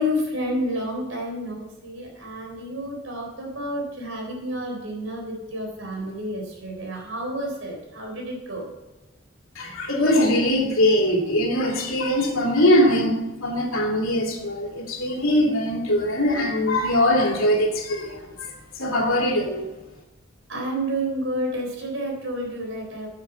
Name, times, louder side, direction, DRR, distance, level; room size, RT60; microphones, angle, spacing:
voice 1, 0.0-8.7 20.5-23.1, equal, 75° right, 0 dB, 3.8 m, -30 dB
voice 2, 9.6-18.5 18.8-19.6, left 1 dB, 85° left, 0 dB, 2.7 m, -21 dB
9.7 x 8.3 x 5.6 m, 1.1 s
head